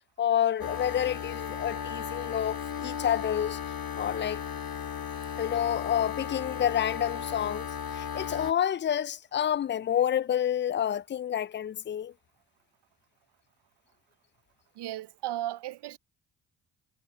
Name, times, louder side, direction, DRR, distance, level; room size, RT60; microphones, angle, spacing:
voice 1, 0.2-3.6 4.0-4.4 5.4-12.1, left 10 dB, 25° left, 0.3 m, -29 dB
sound 1, 0.6-8.5, left 8 dB, 45° left, 2.1 m, -36 dB
voice 2, 14.8-16.0, right 14 dB, 60° right, 0.8 m, -35 dB
hypercardioid pair, 50°, 48 cm